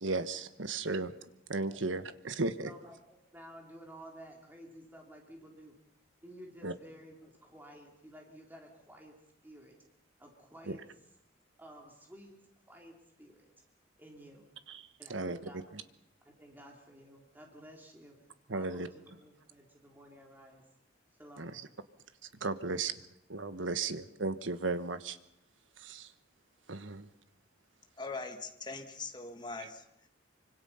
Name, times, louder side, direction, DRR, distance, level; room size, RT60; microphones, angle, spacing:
voice 1, 0.0-1.1 1.5-2.7 6.6-6.7 10.7-10.8 14.7-14.8 15.1-15.4 18.5-18.9 21.4-21.5 22.4-22.9 23.3-25.2 25.8-26.1 26.7-27.1, right 3 dB, 80° right, 12 dB, 1.3 m, -35 dB
voice 2, 2.6-5.7 6.2-9.2 9.4-9.8 10.2-10.8 11.6-12.3 12.7-13.5 14.0-14.5 15.0-15.8 16.2-18.2 18.5-20.6 21.2-21.5, equal, 10° right, 0 dB, 3.6 m, -53 dB
voice 3, 28.0-29.9, left 3 dB, 25° left, 5 dB, 1.8 m, -41 dB
25.5 x 25.0 x 5.7 m, 0.78 s
head